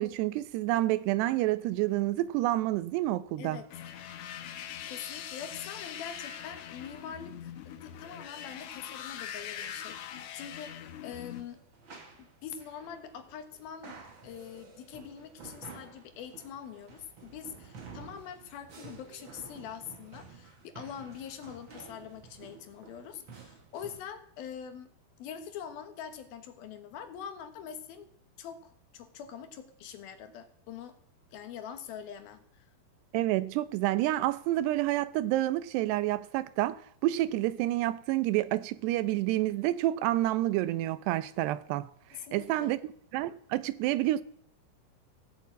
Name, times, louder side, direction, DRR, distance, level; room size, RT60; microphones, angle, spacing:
voice 1, 0.0-3.6 33.1-41.9 42.3-42.8 43.1-44.2, right 15 dB, 90° right, 2.9 m, -29 dB
sound 1, 3.7-11.4, left 9 dB, 85° left, 1.5 m, -42 dB
voice 2, 4.9-11.6 12.2-14.0 14.2-24.9 25.2-28.1 28.4-31.0 31.3-32.7 42.1-42.7, left 8 dB, 70° left, 2.9 m, -44 dB
sound 2, 11.2-24.1, right 5 dB, 40° right, 2.0 m, -51 dB
16.5 x 7.3 x 8.4 m
omnidirectional pair, 4.7 m